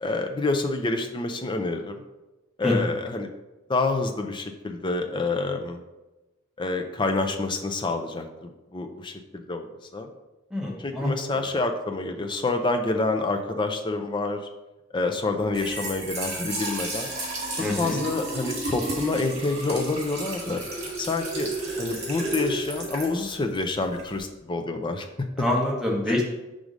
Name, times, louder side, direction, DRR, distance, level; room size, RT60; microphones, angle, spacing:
voice 1, 0.0-2.0 2.6-3.3 3.7-5.8 6.6-9.7 9.9-10.1 10.8-14.4 14.9-17.1 17.8-20.6 21.0-21.5 21.8-25.3 26.1-26.2, left 3 dB, 25° left, 5 dB, 0.5 m, -27 dB
voice 2, 10.5-11.1 17.6-18.0 25.4-26.2, left 1 dB, 5° right, -3 dB, 1.1 m, -25 dB
Trickle dribble / Fill (with liquid), 15.4-24.2, right 2 dB, 35° right, 1.8 m, -33 dB
4.7 x 3.8 x 5.2 m, 1.1 s
head